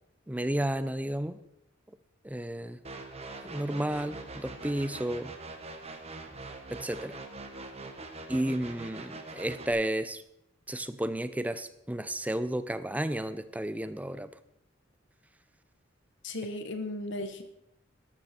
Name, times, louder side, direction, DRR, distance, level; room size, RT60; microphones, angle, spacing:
voice 1, 0.3-1.4 2.2-2.8 3.4-5.3 6.7-7.2 8.3-10.2 10.7-14.3, right 1 dB, 10° right, 13 dB, 0.6 m, -32 dB
sound 1, 2.8-9.7, right 2 dB, 35° right, 1.4 m, -43 dB
voice 2, 16.2-17.4, left 2 dB, 65° left, 8 dB, 1.4 m, -36 dB
13.5 x 12.0 x 4.4 m, 0.79 s
head